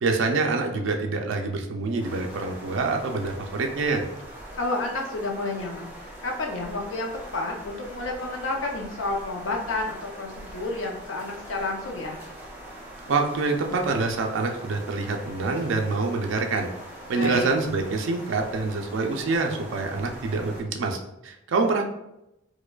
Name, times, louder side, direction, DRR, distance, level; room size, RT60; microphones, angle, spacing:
voice 1, 0.0-4.0 13.1-16.7 17.1-21.8, right 3 dB, 70° right, 3 dB, 0.4 m, -26 dB
sound 1, 2.0-20.6, right 1 dB, 10° right, 0.7 m, -43 dB
voice 2, 4.6-5.9 6.2-12.2 17.2-17.5, left 2 dB, 80° left, 1 dB, 0.6 m, -30 dB
4.6 x 2.2 x 2.3 m, 0.87 s
head